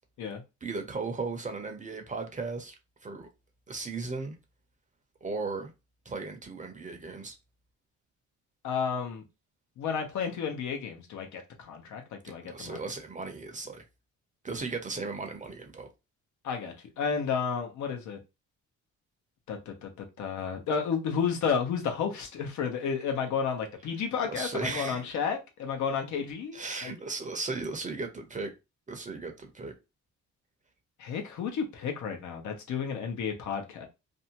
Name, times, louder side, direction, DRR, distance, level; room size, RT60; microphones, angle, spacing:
voice 1, 0.6-2.7 3.0-3.3 3.7-4.4 5.2-5.7 6.1-7.4 12.4-13.8 14.4-15.9 24.3-25.1 26.5-28.5 28.9-29.7, right 3 dB, 25° right, 0.7 m, -36 dB
voice 2, 8.6-9.2 9.8-12.8 16.4-18.2 19.5-26.9 31.0-33.9, left 6 dB, 75° left, 0.8 m, -32 dB
2.6 x 2.1 x 2.8 m
cardioid pair, 90°, 30 cm